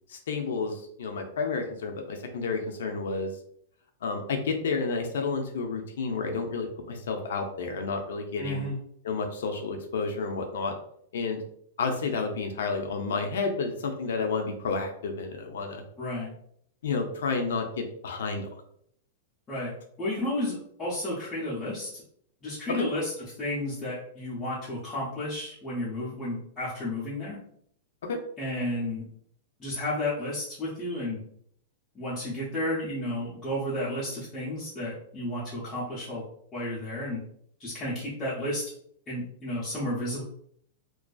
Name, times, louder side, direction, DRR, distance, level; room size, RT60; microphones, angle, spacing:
voice 1, 0.1-3.3 4.0-8.7 9.0-10.7 11.1-11.4 11.8-15.8 16.8-18.5 22.7-22.9 28.0-28.2, left 4 dB, 70° left, 4 dB, 0.4 m, -30 dB
voice 2, 8.4-8.8 16.0-16.3 19.5-19.7 20.0-21.9 22.4-23.1 23.4-27.4 28.4-29.0 29.6-31.2 31.9-36.2 36.5-37.2 37.6-38.6 39.1-40.2, left 1 dB, 10° left, -9 dB, 0.4 m, -32 dB
2.4 x 2.2 x 2.3 m, 0.67 s
supercardioid pair, 180°, 0 cm